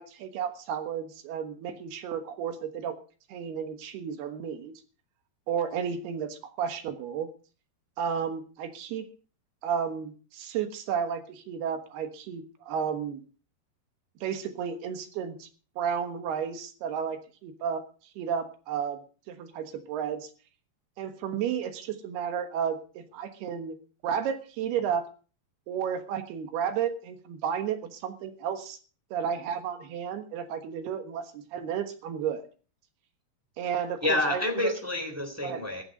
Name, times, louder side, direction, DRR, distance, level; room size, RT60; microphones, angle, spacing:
voice 1, 0.0-3.0 3.3-4.7 5.5-7.3 8.0-9.1 9.6-13.2 14.2-15.5 15.8-17.8 18.2-19.0 19.3-20.3 21.0-23.8 24.0-25.0 25.7-28.8 29.1-32.5 33.6-34.7 35.4-35.6, right 7 dB, 80° right, 8 dB, 3.3 m, -32 dB
voice 2, 34.0-35.8, left 2 dB, 5° right, 3 dB, 2.5 m, -28 dB
15.0 x 11.5 x 5.3 m, 0.38 s
omnidirectional pair, 4.5 m